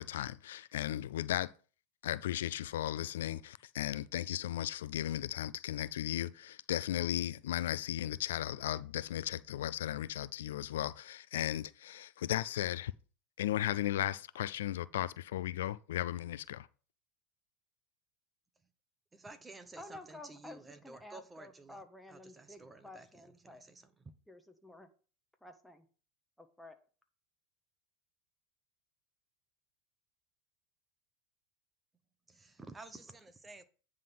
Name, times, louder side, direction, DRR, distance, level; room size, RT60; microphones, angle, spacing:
voice 1, 0.0-1.5 2.0-12.9 13.4-16.7, left 12 dB, 85° left, 0.3 m, -36 dB
voice 2, 19.1-21.8 22.1-23.9 32.3-33.6, right 3 dB, 15° right, 0.9 m, -52 dB
voice 3, 19.8-23.6 24.3-24.9 25.4-25.8 26.4-26.7, left 2 dB, 5° left, 1.3 m, -52 dB
9.1 x 3.7 x 6.0 m
hypercardioid pair, 110°, 0 cm